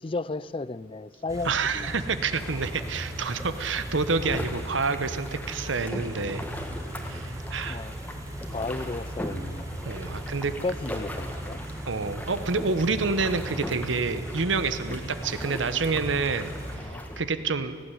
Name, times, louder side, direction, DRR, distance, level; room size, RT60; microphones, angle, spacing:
voice 1, 0.0-2.0 5.9-6.1 7.6-7.9 8.5-9.6 10.4-11.6 16.7-17.1, left 3 dB, 25° left, 18 dB, 0.4 m, -34 dB
Car / Idling, 1.3-16.8, right 1 dB, 15° right, 1.7 m, -39 dB
voice 2, 1.4-6.4 7.0-7.8 9.8-10.5 11.9-16.5 16.8-17.8, right 4 dB, 75° right, 12 dB, 1.0 m, -28 dB
sound 1, 2.4-17.2, equal, 10° left, 1.7 m, -38 dB
18.0 x 15.5 x 9.8 m, 2.1 s
head